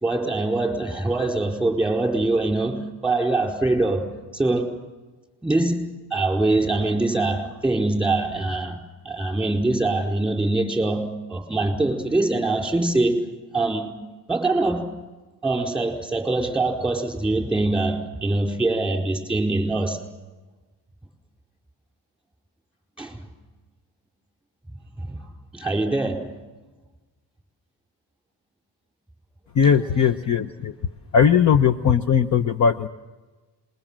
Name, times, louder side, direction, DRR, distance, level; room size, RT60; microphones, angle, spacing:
voice 1, 0.0-4.8 5.4-8.8 9.0-13.3 13.5-14.0 14.3-14.9 15.4-20.0 23.0-23.2 25.0-26.4, right 2 dB, ahead, 4.6 m, -23 dB
voice 2, 29.5-30.7 31.1-32.9, left 7 dB, 40° left, 0.9 m, -19 dB
27.5 x 22.0 x 7.5 m
cardioid pair, 135°, 43 cm